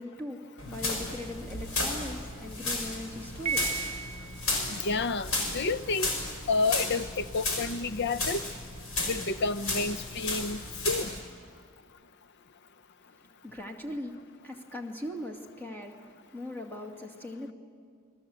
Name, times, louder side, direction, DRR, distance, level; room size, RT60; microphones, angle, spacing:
voice 1, 0.0-4.7 13.4-14.2 14.4-17.5, left 1 dB, 10° left, 2 dB, 2.5 m, -40 dB
sound 1, 0.6-11.2, left 2 dB, 90° left, 5.7 m, -34 dB
Piano, 3.5-4.6, right 7 dB, 30° right, 0.6 m, -34 dB
voice 2, 4.7-6.1 6.5-8.4 9.0-11.1, left 3 dB, 55° left, 14 dB, 0.7 m, -30 dB
29.0 x 20.0 x 8.0 m, 2.3 s
head